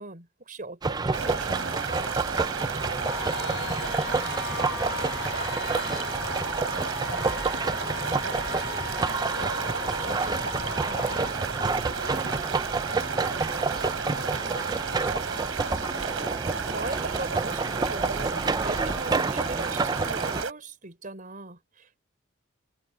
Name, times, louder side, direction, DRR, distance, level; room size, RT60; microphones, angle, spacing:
voice 1, 0.0-2.1 10.1-10.4 10.8-11.2 16.7-22.0, right 2 dB, 40° right, 4.7 m, -40 dB
sound 1, 0.8-20.4, right 4 dB, 20° right, 0.4 m, -29 dB
sound 2, 1.1-20.5, right 5 dB, 90° right, 4.2 m, -34 dB
voice 2, 2.7-3.2 3.6-6.6 6.9-9.2 9.9-15.1, equal, 10° left, 6.3 m, -53 dB
sound 3, 3.0-11.3, left 8 dB, 60° left, 1.7 m, -38 dB
head